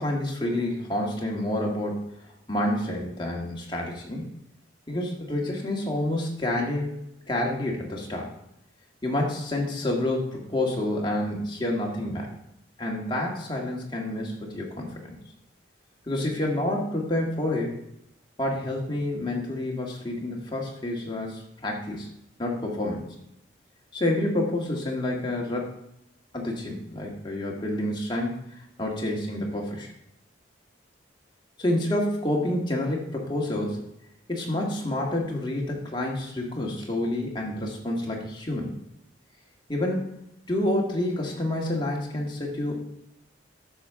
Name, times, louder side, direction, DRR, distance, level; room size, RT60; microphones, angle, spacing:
voice 1, 0.0-2.1 2.5-4.3 4.9-7.0 7.3-8.3 9.0-12.3 12.8-15.2 16.1-17.8 18.4-22.1 22.4-23.1 23.9-25.8 26.3-28.4 28.8-29.9 31.6-33.9 34.3-38.7 39.7-40.1 40.5-42.8, left 1 dB, 25° left, -1 dB, 1.7 m, -28 dB
9.8 x 6.9 x 3.6 m, 0.80 s
head